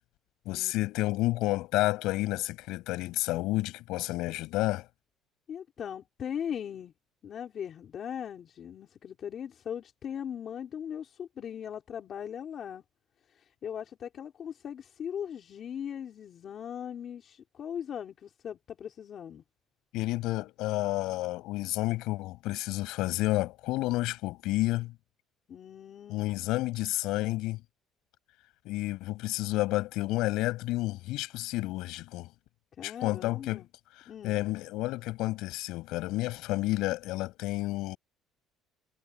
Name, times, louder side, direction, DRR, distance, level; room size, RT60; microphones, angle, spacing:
voice 1, 0.4-4.9 19.9-24.9 26.1-27.6 28.6-32.3 32.8-33.6 34.2-38.0, left 18 dB, 75° left, 7.8 m, -30 dB
voice 2, 5.5-6.9 7.2-12.8 13.4-19.4 25.5-26.2 32.8-33.7 34.1-34.3, left 8 dB, 40° left, 4.1 m, -39 dB
cardioid pair, 150°, 0 cm